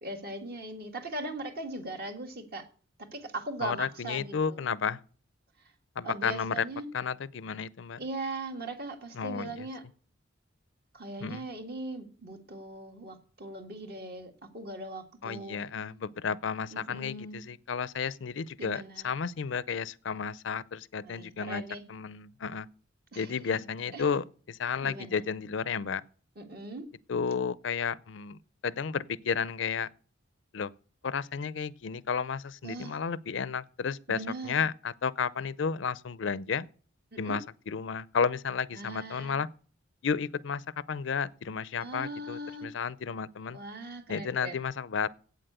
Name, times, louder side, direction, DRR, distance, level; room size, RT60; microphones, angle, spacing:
voice 1, 0.0-2.6 3.0-4.7 6.0-6.9 8.0-9.8 10.9-15.6 16.7-17.4 18.6-19.1 21.0-21.8 23.1-23.3 23.9-24.1 24.8-25.2 26.4-26.9 32.6-33.0 34.1-34.6 37.1-37.4 38.7-39.4 41.8-42.7 43.5-44.6, right 2 dB, 50° right, 1.8 m, -39 dB
voice 2, 3.6-5.0 6.0-6.6 6.9-8.0 9.2-9.7 11.2-11.5 15.2-21.6 21.9-22.7 23.2-26.0 27.1-29.9 30.5-30.7 31.0-36.7 37.2-39.5 40.0-40.6 40.9-43.6 44.1-45.1, left 6 dB, 65° left, 0.5 m, -32 dB
8.5 x 7.6 x 8.0 m
head